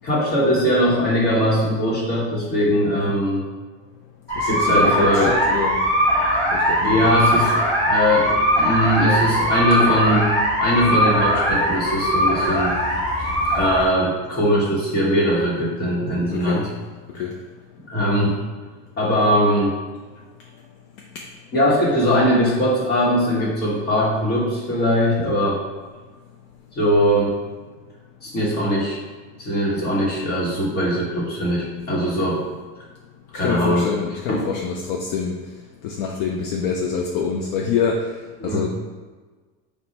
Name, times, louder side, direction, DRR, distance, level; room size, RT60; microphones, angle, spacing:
voice 1, 0.0-3.4 4.4-5.3 6.8-10.3 10.6-12.7 13.5-16.7 17.9-18.3 19.0-19.7 21.5-25.6 26.7-27.3 28.2-29.0 29.4-32.4 33.3-33.8 34.3-34.4 38.4-38.6, equal, 30° left, -6 dB, 1.2 m, -20 dB
voice 2, 4.3-5.8 6.5-7.1 16.3-16.6 17.1-17.4 21.1-21.3 32.2-32.3 33.3-35.4 35.8-38.2 38.4-38.7, left 6 dB, 60° left, 1 dB, 0.5 m, -26 dB
sound 1, 4.3-13.8, equal, 10° left, 1.1 m, -20 dB
4.4 x 2.1 x 4.0 m, 1.4 s
supercardioid pair, 145°, 32 cm